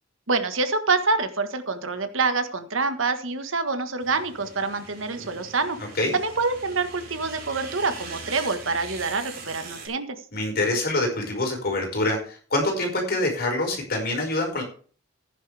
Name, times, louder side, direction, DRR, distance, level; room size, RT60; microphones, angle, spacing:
voice 1, 0.3-5.8 6.1-10.2, right 4 dB, 80° right, 8 dB, 1.5 m, -26 dB
sound 1, 4.0-9.9, right 4 dB, 50° right, 5.8 m, -41 dB
voice 2, 5.8-6.1 10.3-14.6, left 2 dB, 55° left, 1 dB, 5.3 m, -25 dB
15.0 x 10.0 x 3.4 m, 0.42 s
head